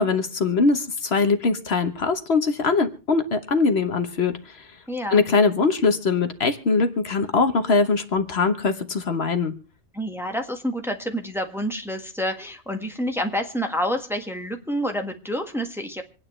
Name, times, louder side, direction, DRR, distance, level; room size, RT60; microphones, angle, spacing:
voice 1, 0.0-4.6 5.1-9.5, left 4 dB, 65° left, 9 dB, 1.4 m, -22 dB
voice 2, 4.9-5.2 9.9-16.0, equal, ahead, 4 dB, 1.6 m, -28 dB
26.5 x 9.6 x 3.2 m, 0.35 s
omnidirectional pair, 1.2 m